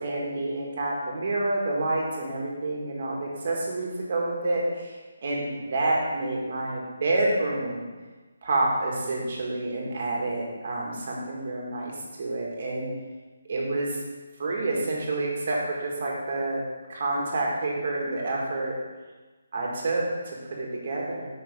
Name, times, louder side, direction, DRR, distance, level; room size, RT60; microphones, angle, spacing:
voice 1, 0.0-5.0 5.2-7.8 8.4-11.9 12.2-12.9 13.5-14.0 14.4-16.6 16.9-18.7 19.5-21.3, right 2 dB, 50° right, -2 dB, 1.8 m, -28 dB
6.0 x 5.5 x 3.6 m, 1.3 s
figure-of-eight pair, 155°, 0 cm